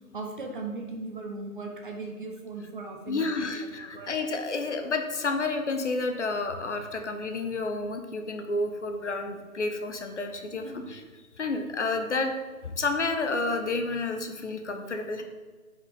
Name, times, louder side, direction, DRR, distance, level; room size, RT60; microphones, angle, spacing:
voice 1, 0.1-3.5 3.8-4.1 10.5-10.9, right 3 dB, 35° right, 2 dB, 0.9 m, -38 dB
voice 2, 3.1-11.0 11.4-12.3 12.6-15.2, left 3 dB, 50° left, 5 dB, 0.8 m, -30 dB
5.4 x 5.2 x 5.0 m, 1.4 s
figure-of-eight pair, 145°, 44 cm